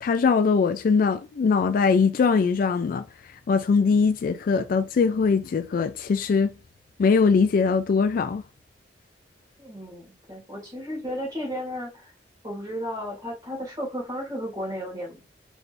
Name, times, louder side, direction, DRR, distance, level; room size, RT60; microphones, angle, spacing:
voice 1, 0.0-3.1 3.5-6.5 7.0-8.4, left 5 dB, 50° left, 0.3 m, -21 dB
voice 2, 9.6-12.1 12.4-15.2, equal, 25° right, 2.0 m, -34 dB
4.3 x 3.3 x 2.5 m
head